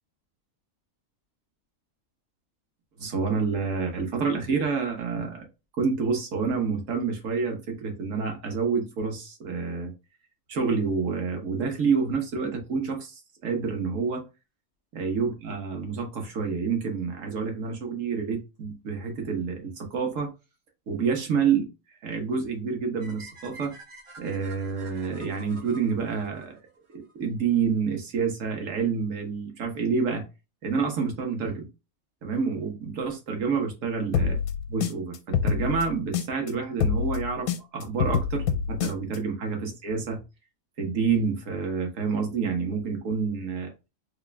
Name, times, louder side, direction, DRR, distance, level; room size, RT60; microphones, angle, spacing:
voice 1, 3.0-5.4 5.8-9.9 10.5-14.2 14.9-20.3 20.9-21.7 22.0-23.7 24.2-26.6 26.9-30.2 30.6-31.7 32.2-34.4 34.7-40.2 40.8-43.7, right 5 dB, 60° right, 3 dB, 1.3 m, -28 dB
sound 1, 23.0-27.1, right 3 dB, 45° right, 0.4 m, -48 dB
sound 2, 34.1-36.5 36.8-39.2, left 7 dB, 80° left, 1.1 m, -26 dB
3.6 x 2.4 x 3.3 m, 0.28 s
omnidirectional pair, 1.5 m